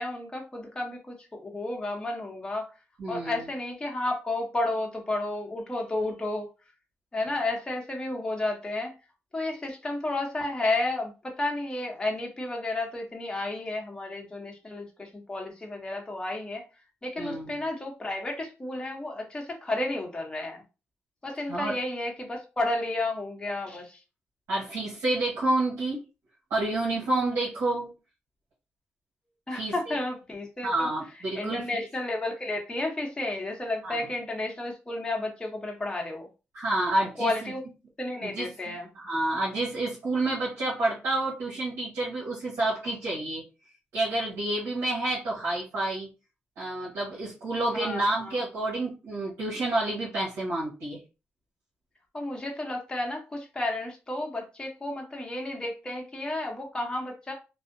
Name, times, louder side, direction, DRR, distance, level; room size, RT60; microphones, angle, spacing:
voice 1, 0.0-2.7 3.1-6.5 7.1-8.9 9.3-16.6 17.0-20.6 21.2-24.0 29.5-30.9 31.3-36.3 37.2-37.6 38.0-38.9 47.7-48.4 52.1-57.3, left 2 dB, 20° left, 1 dB, 0.7 m, -32 dB
voice 2, 3.0-3.4 17.2-17.6 21.5-21.7 24.5-26.0 26.5-27.9 29.5-30.0 30.6-31.6 33.8-34.0 36.5-37.5 38.2-43.4 43.9-46.1 46.6-51.0, right 2 dB, 85° right, -7 dB, 1.1 m, -29 dB
2.6 x 2.0 x 2.5 m, 0.29 s
cardioid pair, 80°, 5 cm